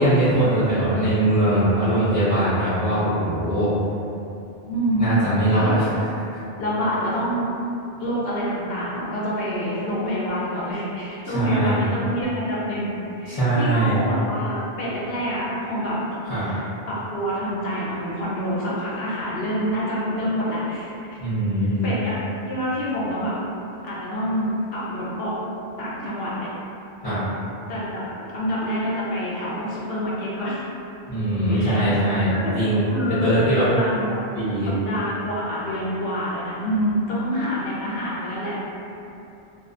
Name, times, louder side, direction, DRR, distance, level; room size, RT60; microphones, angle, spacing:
voice 1, 0.0-3.7 5.0-5.9 11.3-11.8 13.3-14.0 16.3-16.5 21.2-21.8 27.0-27.2 31.1-33.7 34.3-34.7, right 1 dB, 40° left, -14 dB, 0.7 m, -21 dB
voice 2, 4.7-5.8 6.6-7.5 8.0-16.0 16.4-21.2 21.8-22.2 22.5-23.4 23.8-25.4 25.8-26.5 27.7-28.1 28.3-30.6 31.5-34.2 34.6-38.6, equal, 70° left, -7 dB, 0.8 m, -27 dB
2.4 x 2.3 x 2.4 m, 2.7 s
omnidirectional pair, 1.0 m